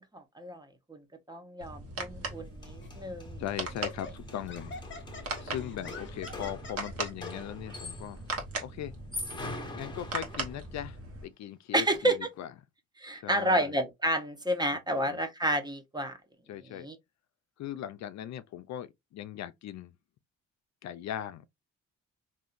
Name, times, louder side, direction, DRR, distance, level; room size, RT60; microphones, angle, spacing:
voice 1, 0.1-0.6 0.9-1.0 1.3-3.4 11.7-12.2 13.0-16.1 16.8-16.9, right 1 dB, 15° right, 0.9 m, -30 dB
sound 1, 1.6-11.2, right 3 dB, 50° right, 1.2 m, -40 dB
sound 2, 2.3-2.4 2.6-8.3 8.9-10.7, left 2 dB, 15° left, 1.3 m, -44 dB
Laughter, 2.8-3.0 3.7-7.3, left 4 dB, 40° left, 1.0 m, -45 dB
voice 2, 3.4-4.8 5.1-8.2 8.6-8.9 9.7-12.5 13.2-13.8 14.9-15.2 16.5-16.9 17.6-19.9 20.8-21.5, left 11 dB, 65° left, 0.5 m, -39 dB
3.5 x 2.7 x 2.5 m
cardioid pair, 90°, 30 cm